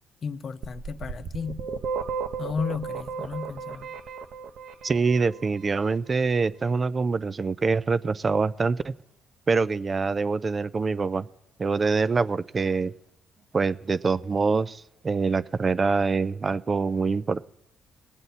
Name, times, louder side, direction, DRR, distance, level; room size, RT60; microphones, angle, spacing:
voice 1, 0.2-1.6 2.4-4.0, left 5 dB, 50° left, 0.6 m, -33 dB
sound 1, 0.6-5.5, right 5 dB, 65° right, 0.7 m, -34 dB
voice 2, 4.8-8.9 9.5-11.3 11.6-12.9 13.5-17.4, right 4 dB, 35° right, 0.3 m, -25 dB
19.5 x 7.9 x 4.1 m
cardioid pair, 90°, 0 cm